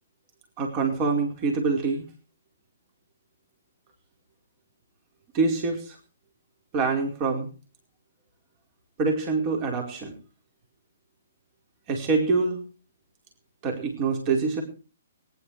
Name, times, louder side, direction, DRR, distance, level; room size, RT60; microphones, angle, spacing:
voice 1, 0.6-2.0 5.3-6.0 6.7-7.5 9.0-10.1 11.9-12.6 13.6-14.6, right 4 dB, 30° right, 2 dB, 4.7 m, -25 dB
21.0 x 11.0 x 4.9 m, 0.37 s
figure-of-eight pair, 125°, 0 cm